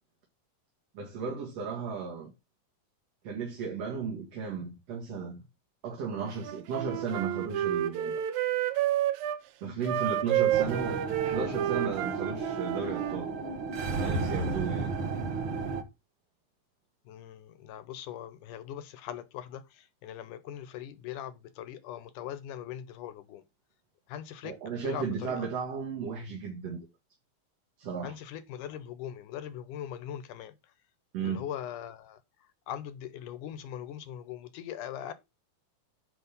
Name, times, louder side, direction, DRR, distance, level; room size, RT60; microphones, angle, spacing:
voice 1, 0.9-2.3 3.2-5.4 5.8-8.2 9.6-13.3 14.0-15.0 24.4-26.8 27.8-28.1 31.1-31.4, right 5 dB, 50° right, 2.8 m, -35 dB
Wind instrument woodwind instrument, 6.4-9.4 9.8-13.2, right 12 dB, 85° right, 2.6 m, -30 dB
sound 1, 10.5-15.8, right 4 dB, 65° right, 1.3 m, -33 dB
voice 2, 17.1-23.4 24.1-24.5 24.8-25.5 28.0-30.6 31.2-35.1, left 10 dB, 75° left, 2.2 m, -41 dB
9.6 x 4.3 x 5.3 m
omnidirectional pair, 4.0 m